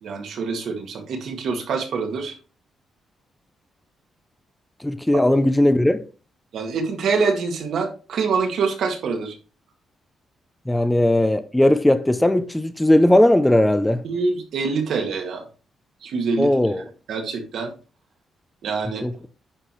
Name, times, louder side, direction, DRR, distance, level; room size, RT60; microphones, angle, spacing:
voice 1, 0.0-2.4 5.1-5.2 6.5-9.4 14.0-15.4 16.0-16.5 17.1-17.7 18.6-19.0, right 4 dB, 65° right, 2.0 m, -25 dB
voice 2, 4.8-6.0 10.7-14.0 16.4-16.8 19.0-19.2, left 1 dB, 5° left, 0.5 m, -18 dB
9.9 x 5.8 x 3.2 m
cardioid pair, 155°, 0 cm